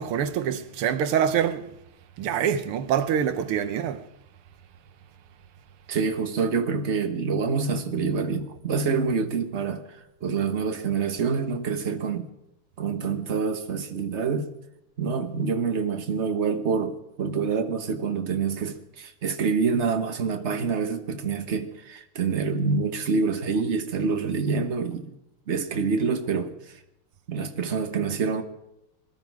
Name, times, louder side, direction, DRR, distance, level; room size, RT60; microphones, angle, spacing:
voice 1, 0.0-1.7 2.2-4.0, right 8 dB, 80° right, 1.8 m, -25 dB
voice 2, 5.9-12.3 12.8-14.5 15.0-25.1 25.5-26.8 27.3-28.4, right 5 dB, 40° right, 1.3 m, -26 dB
21.0 x 12.5 x 4.7 m
omnidirectional pair, 2.4 m